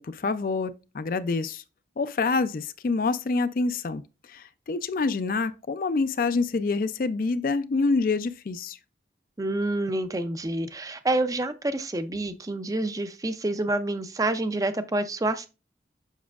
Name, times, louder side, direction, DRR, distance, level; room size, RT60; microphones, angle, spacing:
voice 1, 0.0-1.6 2.0-4.0 4.3-8.8, left 4 dB, 50° left, 0.4 m, -27 dB
voice 2, 9.4-15.5, right 2 dB, 20° right, 0.4 m, -28 dB
7.2 x 5.9 x 2.3 m
head